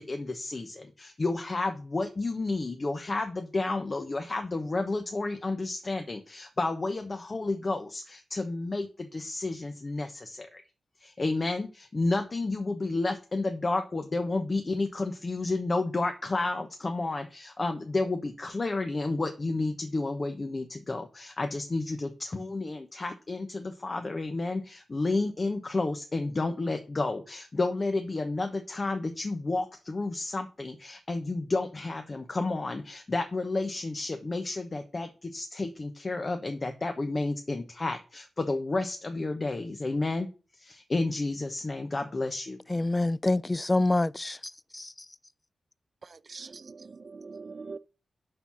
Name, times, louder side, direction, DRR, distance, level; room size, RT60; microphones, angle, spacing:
voice 1, 0.0-10.6 11.0-40.3 40.5-42.6, left 2 dB, 40° left, 1.0 m, -31 dB
voice 2, 42.7-44.9, left 2 dB, 20° left, 0.3 m, -27 dB
voice 3, 46.0-47.8, right 4 dB, 50° right, 0.5 m, -43 dB
6.8 x 5.6 x 6.2 m
cardioid pair, 70°, 0 cm